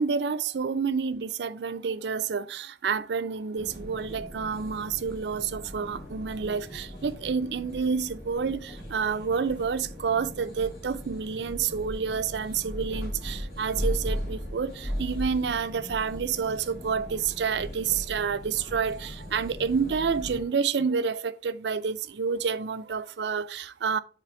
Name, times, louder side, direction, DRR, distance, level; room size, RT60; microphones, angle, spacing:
voice 1, 0.0-24.0, right 6 dB, 80° right, 0.5 m, -29 dB
sound 1, 3.5-20.4, equal, 65° left, 3.4 m, -38 dB
7.6 x 3.4 x 4.7 m
head